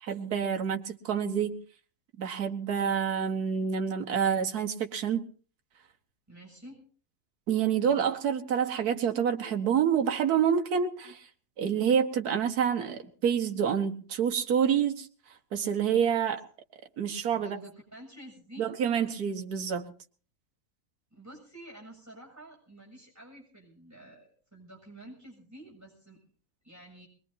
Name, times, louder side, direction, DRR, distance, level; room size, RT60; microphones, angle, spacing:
voice 1, 0.0-1.6 2.2-5.3 7.5-11.3 11.6-15.1 15.5-16.4 17.0-17.6 18.6-19.9, right 7 dB, 80° right, 5 dB, 1.7 m, -27 dB
voice 2, 6.3-6.8 17.3-18.7 21.1-26.2 26.6-27.1, right 1 dB, 10° right, 0 dB, 7.3 m, -49 dB
22.5 x 21.0 x 2.8 m, 0.41 s
omnidirectional pair, 1.6 m